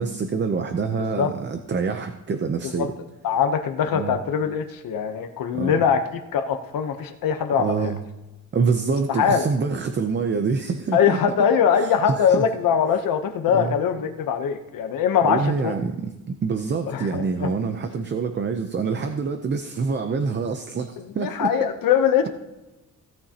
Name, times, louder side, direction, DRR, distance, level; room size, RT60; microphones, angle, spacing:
voice 1, 0.0-2.9 3.9-4.2 5.5-5.8 7.6-8.0 8.5-11.2 11.7-12.4 13.5-13.7 15.2-21.5, right 5 dB, 35° right, 7 dB, 0.6 m, -26 dB
voice 2, 3.2-6.0 6.3-7.9 9.1-9.5 10.9-15.7 16.9-17.5 21.2-22.3, left 7 dB, 80° left, 6 dB, 0.9 m, -22 dB
17.0 x 9.6 x 2.9 m, 1.0 s
wide cardioid pair, 160°, 33 cm